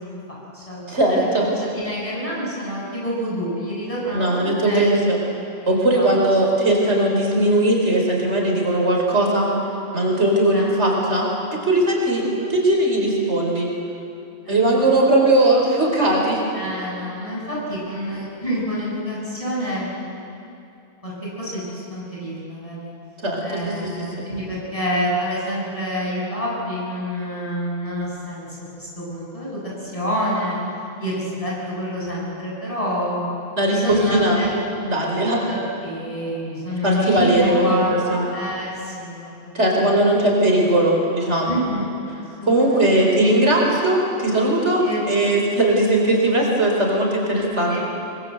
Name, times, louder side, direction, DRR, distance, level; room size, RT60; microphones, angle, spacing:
voice 1, 0.0-0.8 1.1-5.0 5.6-6.1 10.5-10.7 12.2-12.4 14.4-15.5 16.5-19.9 21.0-22.9 23.4-30.6 31.0-33.3 33.7-34.5 35.5-40.0 40.4-40.6 41.4-42.8 44.8-45.3 47.3-47.8, equal, 25° left, -5 dB, 8.0 m, -28 dB
voice 2, 0.9-1.5 4.1-5.2 5.7-9.5 9.9-11.3 11.6-12.2 12.5-13.7 14.5-16.4 23.2-23.4 24.2-24.3 33.6-34.4 34.8-35.4 36.8-38.3 39.5-41.5 42.4-47.8, right 1 dB, 60° right, -1 dB, 4.7 m, -19 dB
24.5 x 24.0 x 8.0 m, 2.7 s
omnidirectional pair, 1.3 m